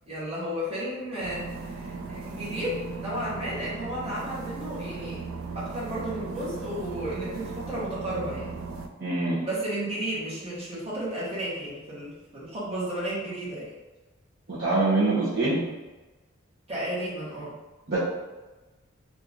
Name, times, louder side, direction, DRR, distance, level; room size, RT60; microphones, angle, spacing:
voice 1, 0.1-5.2 5.5-8.5 9.4-13.7 16.7-17.6, right 1 dB, 30° right, -9 dB, 1.2 m, -33 dB
sound 1, 1.2-8.9, right 4 dB, 75° right, 0.4 m, -37 dB
voice 2, 9.0-9.4 14.5-15.6 17.9-18.0, right 2 dB, 50° right, -9 dB, 0.8 m, -24 dB
2.9 x 2.5 x 3.6 m, 1.2 s
head